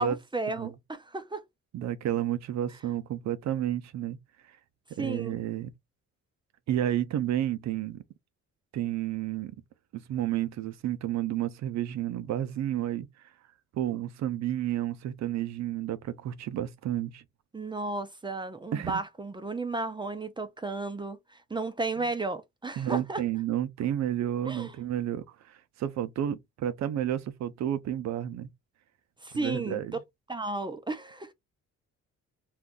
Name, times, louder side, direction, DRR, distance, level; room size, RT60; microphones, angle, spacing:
voice 1, 0.0-1.4 5.0-5.4 17.5-23.2 24.4-24.7 29.2-29.8 30.3-31.3, right 3 dB, 15° right, 0.5 m, -33 dB
voice 2, 1.7-4.2 5.0-5.7 6.7-8.0 8.7-9.5 9.9-13.1 13.7-17.2 18.7-19.0 22.8-28.5 29.3-29.9, right 11 dB, 65° right, 0.5 m, -31 dB
2.5 x 2.4 x 3.7 m
cardioid pair, 90°, 30 cm